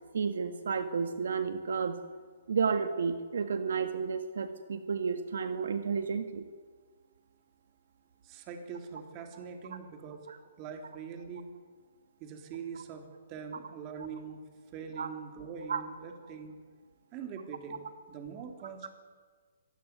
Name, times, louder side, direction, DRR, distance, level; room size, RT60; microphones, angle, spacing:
voice 1, 0.1-2.0 2.5-6.4 10.3-10.4 15.0-15.1 15.7-15.8, right 5 dB, 75° right, 8 dB, 1.8 m, -31 dB
voice 2, 8.2-10.3 10.6-11.5 12.2-14.4 14.7-16.5 17.1-18.9, right 6 dB, 25° right, 4 dB, 3.5 m, -43 dB
25.0 x 17.5 x 9.6 m, 1.5 s
hypercardioid pair, 160°, 0 cm